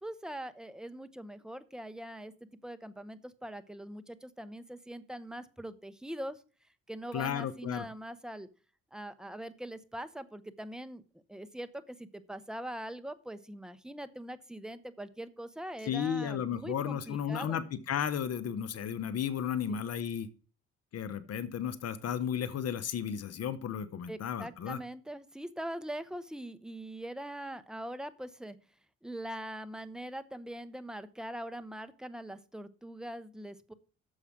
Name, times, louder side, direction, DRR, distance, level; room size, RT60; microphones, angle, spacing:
voice 1, 0.0-2.3 2.6-6.4 6.9-8.5 8.9-11.0 11.3-17.6 19.7-19.8 24.1-28.6 29.0-33.7, right 1 dB, ahead, 11 dB, 0.7 m, -42 dB
voice 2, 7.1-7.8 15.8-20.3 20.9-24.8, left 8 dB, 55° left, 13 dB, 0.7 m, -34 dB
7.1 x 4.9 x 7.1 m, 0.38 s
cardioid pair, 90°, 30 cm